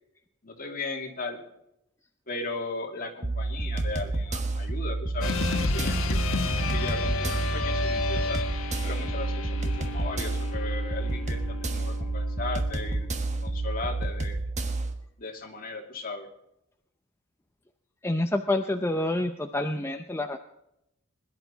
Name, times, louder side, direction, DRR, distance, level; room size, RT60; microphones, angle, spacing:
voice 1, 0.4-1.4 2.3-6.2 6.7-8.4 8.8-13.1 13.4-14.4 15.2-16.3, left 3 dB, 45° left, 2 dB, 2.5 m, -37 dB
sound 1, 3.2-14.9, right 2 dB, 35° right, 1.4 m, -30 dB
sound 2, 5.2-13.6, left 3 dB, 80° left, 1.4 m, -32 dB
voice 2, 18.0-20.4, left 1 dB, 10° left, 5 dB, 0.6 m, -27 dB
21.5 x 11.5 x 4.0 m, 0.82 s
head